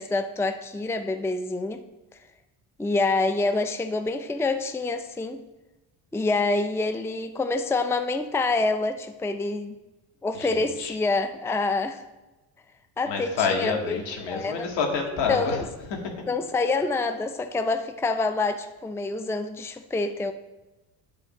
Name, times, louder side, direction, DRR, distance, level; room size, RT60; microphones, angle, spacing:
voice 1, 0.0-1.8 2.8-5.4 6.1-9.7 10.2-12.0 13.0-14.0 14.3-14.6 15.3-15.6 16.3-20.3, left 3 dB, 5° left, 8 dB, 0.5 m, -26 dB
voice 2, 10.3-10.9 13.1-15.6 15.9-16.2, left 5 dB, 70° left, 2 dB, 2.0 m, -28 dB
9.0 x 4.3 x 6.6 m, 1.1 s
hypercardioid pair, 65°, 44 cm